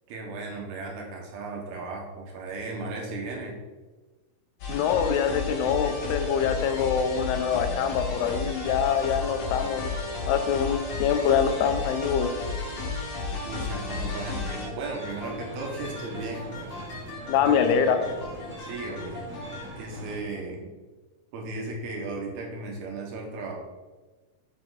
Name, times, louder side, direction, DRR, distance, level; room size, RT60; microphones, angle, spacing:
voice 1, 0.1-3.6 13.4-16.7 17.5-18.0 18.6-19.2 19.7-20.7 21.3-23.5, right 3 dB, 75° right, 0 dB, 3.3 m, -36 dB
sound 1, 4.6-19.7, left 3 dB, 55° left, 3.0 m, -34 dB
voice 2, 4.7-9.9 10.3-12.3 17.3-18.0, left 7 dB, 85° left, 7 dB, 2.8 m, -24 dB
sound 2, 14.8-20.2, right 1 dB, 10° right, 0.8 m, -41 dB
7.8 x 7.1 x 4.0 m, 1.2 s
omnidirectional pair, 4.6 m